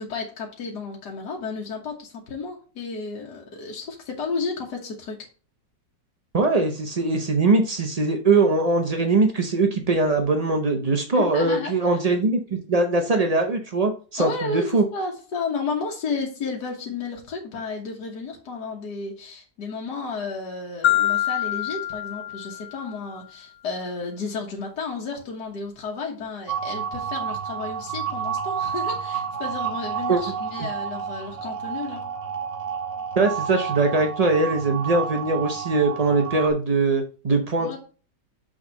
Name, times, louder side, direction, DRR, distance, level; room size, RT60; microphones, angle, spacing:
voice 1, 0.0-5.3 11.1-11.7 14.2-32.0 37.6-37.8, left 4 dB, 65° left, -1 dB, 1.8 m, -32 dB
voice 2, 6.3-14.8 30.1-30.2 33.2-37.8, right 3 dB, 75° right, 4 dB, 0.3 m, -21 dB
Marimba xylophone, 20.8-23.0, left 12 dB, 90° left, 1.7 m, -25 dB
sound 1, 26.5-36.5, right 7 dB, 45° right, 1.9 m, -30 dB
6.3 x 3.9 x 5.2 m, 0.37 s
omnidirectional pair, 1.9 m